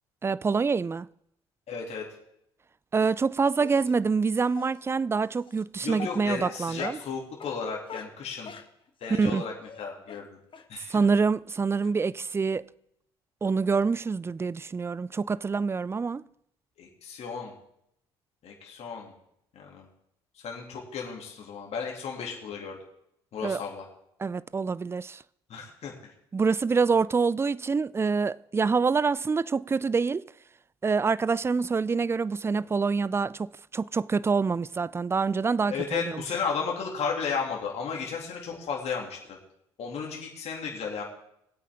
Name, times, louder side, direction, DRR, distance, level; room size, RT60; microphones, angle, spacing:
voice 1, 0.2-1.1 2.9-7.0 9.1-9.4 10.9-12.6 13.4-16.2 23.4-23.6 24.2-25.2 26.3-30.2 30.8-36.2, right 5 dB, 20° right, 0.4 m, -26 dB
voice 2, 1.7-2.0 5.8-8.5 9.0-9.5 9.8-10.4 10.7-11.0 16.8-17.5 18.4-19.1 19.5-19.9 20.4-22.8 23.3-23.9 25.5-26.1 35.7-39.4 39.8-41.0, left 5 dB, 55° left, 2.7 m, -34 dB
Dog, 3.6-3.9 4.5-4.7 5.5-5.6 5.9-7.1 7.4-7.6 7.9-9.4 9.7-9.8 10.1-10.2 10.5-10.6 11.0-11.1 11.5-11.6 11.8-11.9, left 5 dB, 40° left, 1.4 m, -42 dB
20.5 x 8.3 x 3.7 m
hypercardioid pair, 55°, 13 cm